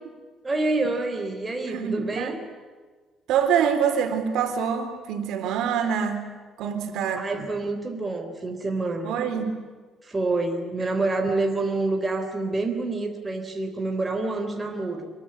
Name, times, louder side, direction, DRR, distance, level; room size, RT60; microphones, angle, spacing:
voice 1, 0.4-2.4 7.2-9.2 10.0-15.1, right 2 dB, 15° right, 3 dB, 3.5 m, -27 dB
voice 2, 1.7-2.3 3.3-6.3 6.6-7.5 9.0-9.6, right 7 dB, 75° right, 6 dB, 3.9 m, -25 dB
25.5 x 22.5 x 10.0 m, 1.4 s
cardioid pair, 165°, 0 cm